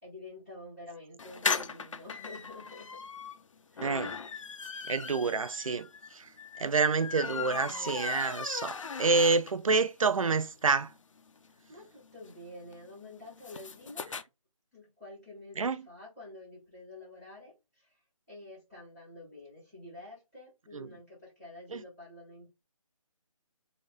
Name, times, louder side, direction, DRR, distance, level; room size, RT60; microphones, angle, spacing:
voice 1, 0.0-3.0 3.7-4.2 11.7-14.1 14.7-18.0 18.3-22.5, left 2 dB, 5° right, 0.3 m, -49 dB
sound 1, 1.2-9.8 10.2-10.3 10.5-10.6 10.8-14.2, left 5 dB, 65° left, 0.5 m, -38 dB
voice 2, 3.8-4.1 4.9-5.9 6.6-10.9 15.6-15.8 20.7-20.9 21.7-21.8, right 4 dB, 75° right, 0.5 m, -28 dB
3.9 x 2.1 x 3.7 m
figure-of-eight pair, 155°, 18 cm